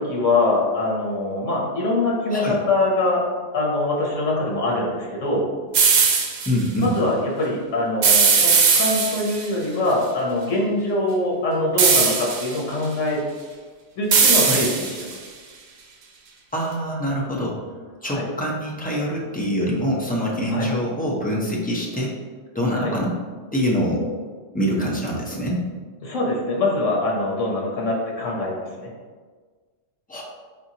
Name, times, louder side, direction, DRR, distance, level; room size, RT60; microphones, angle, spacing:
voice 1, 0.0-3.3 3.5-5.5 6.8-13.2 14.0-15.2 18.0-18.2 20.5-20.7 22.7-22.9 26.0-28.9, left 2 dB, 80° left, -2 dB, 1.2 m, -23 dB
sound 1, 5.7-6.5 8.0-9.5 11.8-12.6 14.1-15.1, right 5 dB, 85° right, 1.0 m, -18 dB
voice 2, 6.5-6.9 14.4-14.6 16.5-17.6 18.0-22.1 22.5-23.1 23.5-24.0 24.5-25.6 30.1-30.2, equal, 10° left, -4 dB, 0.5 m, -24 dB
4.3 x 3.9 x 2.8 m, 1.5 s
omnidirectional pair, 1.3 m